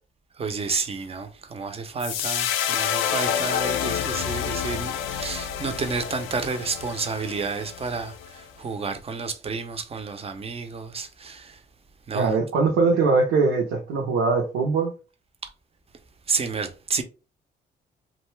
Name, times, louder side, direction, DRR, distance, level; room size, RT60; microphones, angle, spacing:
voice 1, 0.4-11.6 12.1-12.3 16.3-17.0, right 4 dB, 30° right, 0.6 m, -30 dB
sound 1, 2.0-8.4, left 9 dB, 85° left, 0.4 m, -28 dB
voice 2, 12.1-14.9, right 4 dB, 90° right, 0.7 m, -21 dB
2.6 x 2.2 x 3.1 m
cardioid pair, 90°, 20 cm